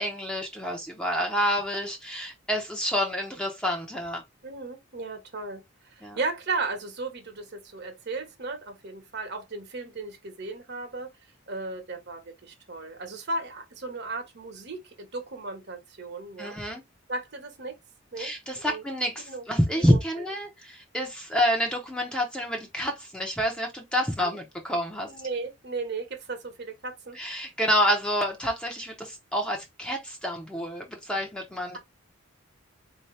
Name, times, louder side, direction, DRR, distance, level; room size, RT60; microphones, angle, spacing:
voice 1, 0.0-4.2 6.0-6.2 16.4-16.8 18.2-25.1 27.1-31.8, equal, 5° left, 0.8 m, -28 dB
voice 2, 4.4-5.6 5.9-11.1 11.5-16.6 17.1-17.7 18.1-18.8 19.3-19.4 19.8-20.0 24.2-24.4 25.0-27.2, right 3 dB, 55° right, 1.2 m, -35 dB
4.4 x 2.8 x 3.1 m
head